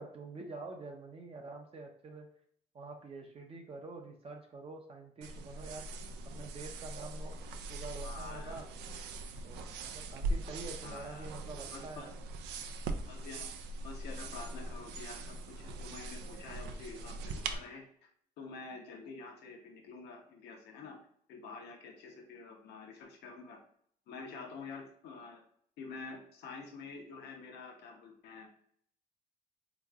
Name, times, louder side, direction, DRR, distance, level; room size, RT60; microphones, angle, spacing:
voice 1, 0.0-2.3 2.7-5.8 6.3-7.3 7.7-8.7 9.4-12.1, right 3 dB, 35° right, 2 dB, 0.6 m, -46 dB
sound 1, 5.2-17.6, right 2 dB, 90° right, 0.4 m, -41 dB
voice 2, 8.0-8.6 10.8-11.3 11.7-12.1 13.1-13.5 13.8-18.1 18.4-21.0 21.3-23.6 24.1-25.4 25.8-28.5, left 4 dB, 75° left, 2 dB, 0.9 m, -48 dB
3.5 x 2.9 x 2.4 m, 0.64 s
cardioid pair, 110°, 17 cm